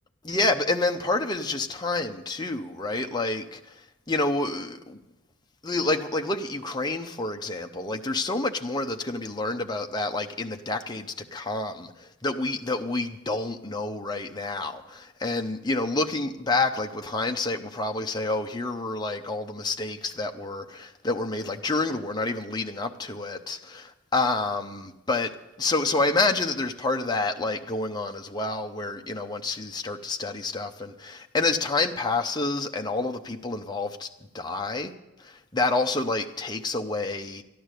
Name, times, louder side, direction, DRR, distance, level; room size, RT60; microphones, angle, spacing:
voice 1, 0.2-5.0 5.6-11.9 12.2-25.3 25.6-34.1 34.3-34.9 35.2-37.4, left 2 dB, 20° left, 4 dB, 0.7 m, -28 dB
13.5 x 11.0 x 6.6 m, 0.94 s
head